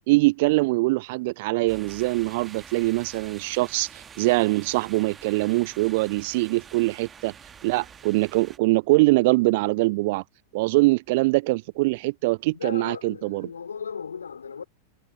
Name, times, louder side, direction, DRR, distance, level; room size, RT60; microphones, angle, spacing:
voice 1, 0.1-7.3 7.6-10.2 10.5-13.5, right 23 dB, 50° right, 0.4 m, -23 dB
sound 1, 1.7-8.6, right 7 dB, 20° right, 1.4 m, -47 dB
voice 2, 12.5-14.6, left 6 dB, 70° left, 3.0 m, -36 dB
figure-of-eight pair, 90°, 0 cm